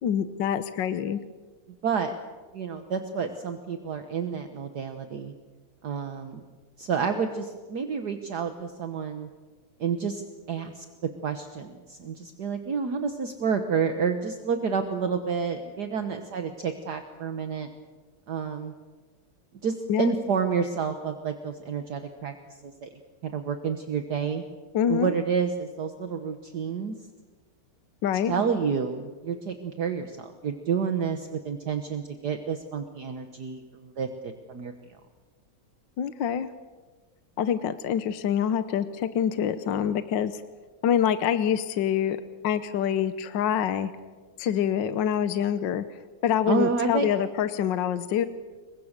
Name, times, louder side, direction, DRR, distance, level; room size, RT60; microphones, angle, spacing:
voice 1, 0.0-1.2 19.9-20.1 24.7-25.1 28.0-28.4 36.0-36.5 37.4-40.4 40.8-42.2 42.4-43.9 44.4-45.8 46.2-48.3, left 9 dB, 70° left, 11 dB, 1.6 m, -26 dB
voice 2, 1.8-2.1 2.5-5.3 5.8-6.4 6.8-9.3 9.8-10.2 10.5-10.9 11.2-17.7 18.3-18.7 19.6-22.3 22.6-22.9 23.2-24.4 24.9-27.0 28.3-34.7 46.5-47.1, right 6 dB, 55° right, 7 dB, 1.8 m, -29 dB
28.0 x 23.0 x 6.7 m, 1.4 s
omnidirectional pair, 2.2 m